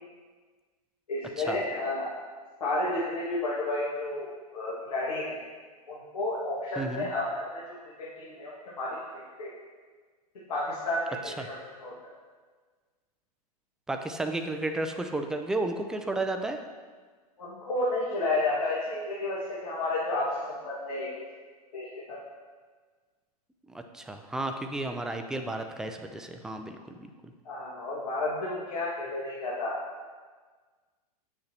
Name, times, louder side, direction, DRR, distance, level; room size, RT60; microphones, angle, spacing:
voice 1, 1.1-2.1 2.6-5.4 5.9-9.5 10.5-12.0 17.4-21.1 21.7-22.2 27.4-29.8, left 2 dB, 75° left, -8 dB, 1.9 m, -31 dB
voice 2, 6.8-7.1 11.3-11.4 13.9-16.6 23.9-27.3, right 2 dB, 5° right, 5 dB, 0.4 m, -33 dB
8.4 x 6.5 x 2.9 m, 1.5 s
hypercardioid pair, 105°, 20 cm